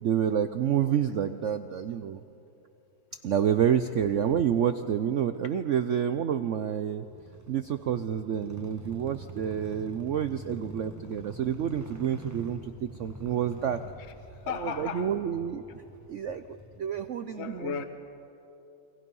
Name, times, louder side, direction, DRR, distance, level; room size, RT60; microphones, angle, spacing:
voice 1, 0.0-2.2 3.2-7.0 7.5-13.8 14.6-15.8 16.1-17.7, right 9 dB, 85° right, 10 dB, 0.6 m, -28 dB
sound 1, 7.0-17.1, right 1 dB, 10° right, 0.9 m, -46 dB
voice 2, 14.0-15.1 17.2-17.8, left 6 dB, 40° left, 8 dB, 1.3 m, -36 dB
28.5 x 23.0 x 5.5 m, 2.8 s
omnidirectional pair, 2.1 m